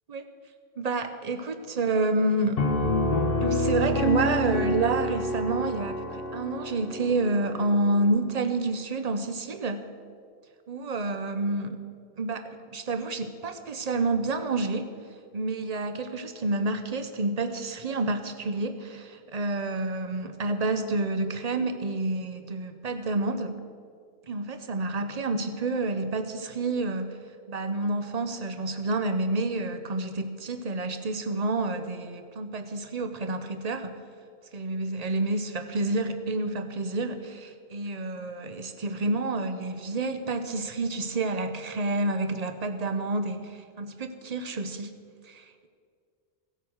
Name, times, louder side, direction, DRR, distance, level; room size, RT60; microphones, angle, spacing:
voice 1, 0.8-2.7 3.4-6.0 6.3-9.8 10.7-11.8 12.2-14.9 15.3-23.5 24.3-27.2 27.5-34.0 34.5-44.9 45.3-45.7, right 2 dB, 40° right, 8 dB, 0.9 m, -29 dB
Piano, 2.6-8.1, left 1 dB, 60° left, 1.1 m, -28 dB
17.0 x 8.0 x 6.3 m, 2.1 s
omnidirectional pair, 1.1 m